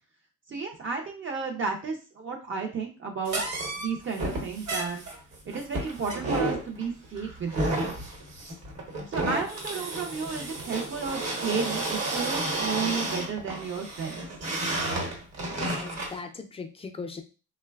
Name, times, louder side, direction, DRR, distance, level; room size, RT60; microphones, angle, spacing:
voice 1, 0.5-3.4 3.8-5.0 5.4-7.7 9.1-14.2, right 5 dB, 40° right, 1 dB, 0.6 m, -33 dB
sound 1, 3.2-16.2, right 2 dB, 60° right, 1.1 m, -32 dB
voice 2, 15.5-17.2, left 4 dB, 20° left, 6 dB, 0.4 m, -39 dB
3.1 x 2.1 x 2.3 m, 0.33 s
cardioid pair, 90°, 30 cm